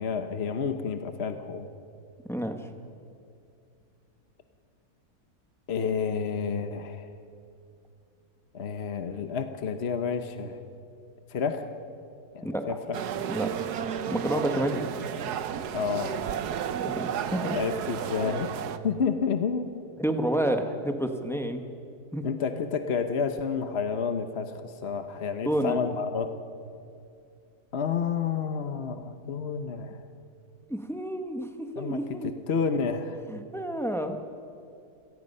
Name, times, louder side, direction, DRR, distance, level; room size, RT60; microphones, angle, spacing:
voice 1, 0.0-1.7 5.7-7.1 8.5-10.6 11.3-11.6 12.3-13.0 15.7-16.2 17.5-18.6 18.8-19.8 22.2-26.3 27.7-30.0 31.8-33.2, left 6 dB, 50° left, 8 dB, 1.1 m, -30 dB
voice 2, 12.4-12.8 13.3-13.5 14.1-14.8 16.8-17.6 20.0-21.6 22.1-22.2 25.4-25.8 30.7-31.5 31.8-32.3 33.3-34.2, right 1 dB, ahead, 5 dB, 1.1 m, -29 dB
sound 1, 12.9-18.8, right 8 dB, 85° right, 1.4 m, -32 dB
26.5 x 18.5 x 5.5 m, 2.5 s
omnidirectional pair, 1.7 m